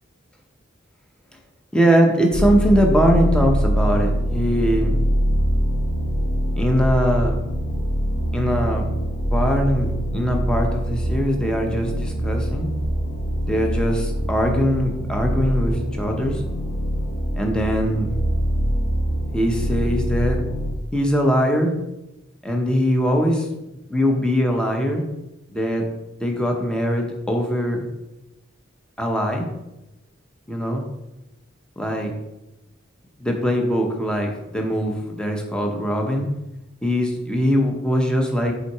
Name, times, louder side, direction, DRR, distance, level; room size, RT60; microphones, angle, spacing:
voice 1, 1.7-5.0 6.6-7.4 8.3-8.9 9.3-12.7 13.5-16.4 17.3-18.1 19.3-20.4 20.9-21.7 22.4-23.4 23.9-25.0 25.5-25.9 26.2-27.9 29.0-29.5 30.5-30.8 31.8-32.1 33.2-36.3 36.8-38.5, equal, 5° left, 1 dB, 0.7 m, -21 dB
sound 1, 2.3-20.7, equal, 70° left, 1.0 m, -24 dB
5.8 x 3.9 x 4.6 m, 0.95 s
head